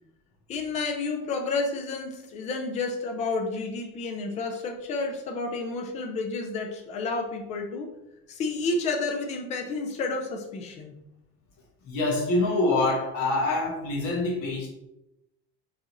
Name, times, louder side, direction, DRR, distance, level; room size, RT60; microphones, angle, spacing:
voice 1, 0.5-7.9 8.3-11.0, left 3 dB, 25° left, 3 dB, 0.4 m, -30 dB
voice 2, 11.8-14.7, left 2 dB, 45° left, -3 dB, 0.9 m, -25 dB
4.7 x 2.6 x 2.9 m, 0.90 s
cardioid pair, 175°, 31 cm